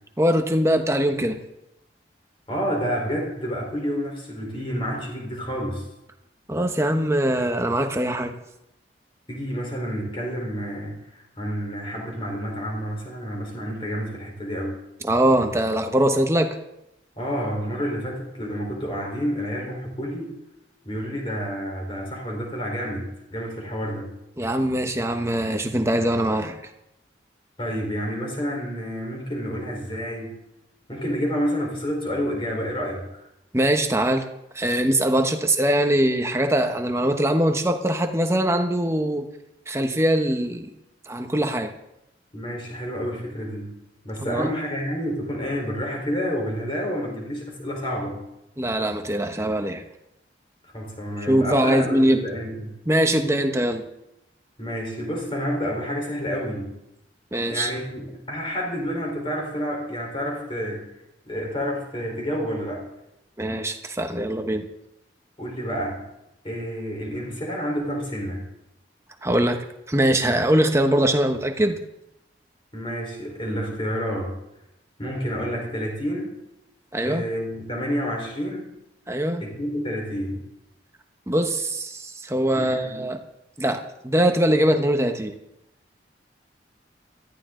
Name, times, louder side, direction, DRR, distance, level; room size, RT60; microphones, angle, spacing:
voice 1, 0.2-1.4 6.5-8.3 15.0-16.6 24.4-26.6 33.5-34.2 34.5-39.3 39.7-40.7 41.1-41.7 44.2-44.5 48.6-49.8 51.3-52.2 52.9-53.8 57.3-57.7 63.4-64.7 69.2-69.6 69.9-71.8 76.9-77.2 79.1-79.4 81.3-83.2 83.6-85.3, right 1 dB, 15° right, 6 dB, 1.1 m, -22 dB
voice 2, 2.5-5.8 9.3-14.8 17.2-20.3 20.8-24.1 27.6-30.3 30.9-33.2 42.3-43.7 44.0-48.2 50.7-52.8 54.6-56.7 57.5-60.9 61.3-62.8 65.4-66.0 66.4-68.5 72.7-74.3 75.0-76.3 77.0-78.7 79.4-80.4 82.5-83.0, equal, 30° left, 0 dB, 4.2 m, -29 dB
18.5 x 13.5 x 3.9 m, 0.86 s
head